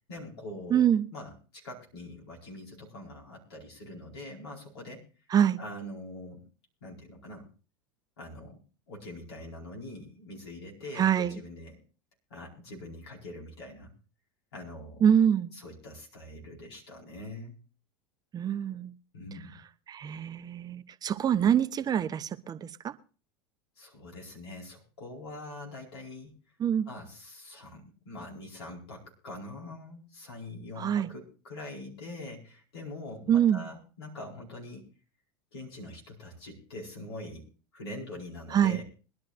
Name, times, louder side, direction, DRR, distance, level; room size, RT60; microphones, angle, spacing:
voice 1, 0.1-5.0 5.6-6.4 6.8-7.5 8.2-8.6 8.9-11.8 12.3-13.9 14.5-15.1 15.5-17.6 19.1-19.6 23.8-26.4 26.8-34.9 35.5-37.4 37.7-38.8, left 1 dB, 85° left, 4.6 m, -43 dB
voice 2, 0.7-1.1 5.3-5.6 11.0-11.4 15.0-15.5 18.3-18.9 19.9-22.9 26.6-26.9 30.8-31.1 33.3-33.6 38.5-38.8, right 9 dB, 30° right, 0.7 m, -25 dB
22.0 x 11.5 x 2.5 m
hypercardioid pair, 85°, 13 cm